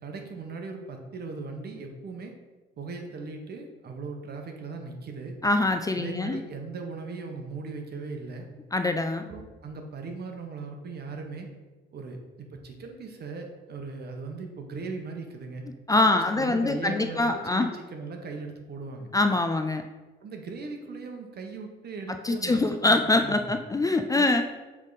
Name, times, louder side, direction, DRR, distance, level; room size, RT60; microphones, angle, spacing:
voice 1, 0.0-2.3 2.8-5.3 5.9-8.5 9.1-11.5 11.9-15.6 16.1-19.1 20.2-23.6 24.2-24.4, right 4 dB, 55° right, 3 dB, 1.1 m, -38 dB
voice 2, 5.4-6.4 8.7-9.2 15.9-17.7 19.1-19.8 22.2-24.4, left 2 dB, 20° left, 7 dB, 0.4 m, -24 dB
7.2 x 3.6 x 4.0 m, 1.3 s
cardioid pair, 90°, 20 cm